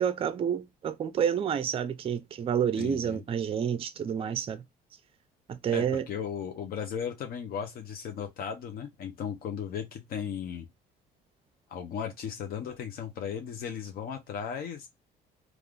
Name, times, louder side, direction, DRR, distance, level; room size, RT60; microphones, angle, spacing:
voice 1, 0.0-4.6 5.5-6.1, right 8 dB, 35° right, 0.4 m, -29 dB
voice 2, 2.8-3.2 5.7-10.7 11.7-14.9, left 7 dB, 60° left, 0.7 m, -36 dB
3.5 x 2.4 x 2.3 m
cardioid pair, 110°, 17 cm